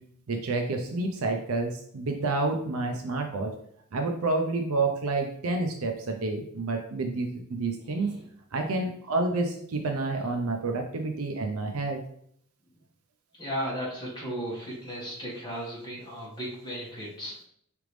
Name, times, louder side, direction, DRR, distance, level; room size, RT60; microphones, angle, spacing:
voice 1, 0.3-3.5 3.9-8.1 8.5-12.0, right 3 dB, 70° right, 4 dB, 0.6 m, -29 dB
voice 2, 7.8-8.3 13.4-17.5, equal, 20° left, -5 dB, 1.7 m, -36 dB
4.9 x 3.4 x 3.1 m, 0.65 s
head